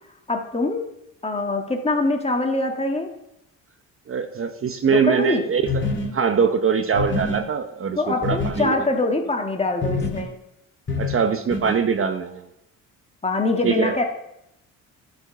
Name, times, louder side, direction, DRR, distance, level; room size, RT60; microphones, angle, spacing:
voice 1, 0.3-0.8 1.2-3.1 4.9-5.4 8.0-10.3 13.2-14.0, left 2 dB, 20° left, 3 dB, 1.7 m, -23 dB
voice 2, 4.1-5.6 6.1-8.8 11.0-12.5 13.6-14.0, right 6 dB, 40° right, 8 dB, 0.8 m, -22 dB
sound 1, 5.7-6.1 6.9-7.4 8.2-8.6 9.8-10.2 10.9-11.1 11.5-11.7, left 3 dB, 35° left, 2.2 m, -25 dB
11.0 x 4.9 x 5.9 m, 0.83 s
cardioid pair, 85°, 33 cm